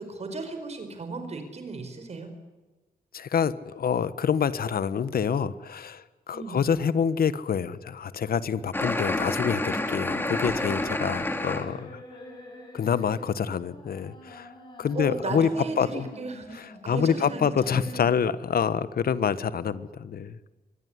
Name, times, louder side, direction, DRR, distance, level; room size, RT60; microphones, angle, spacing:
voice 1, 0.0-2.3 6.3-6.6 14.9-18.0, right 3 dB, 45° right, 7 dB, 4.9 m, -35 dB
voice 2, 3.1-12.0 12.7-14.5 14.8-15.5 15.8-16.1 16.5-20.4, left 7 dB, 85° left, 15 dB, 1.3 m, -27 dB
sound 1, 8.7-11.6, left 1 dB, 15° left, 2.7 m, -28 dB
sound 2, 9.5-18.4, left 1 dB, 30° left, 7.6 m, -46 dB
25.0 x 20.5 x 9.7 m, 1.2 s
wide cardioid pair, 180°, 15 cm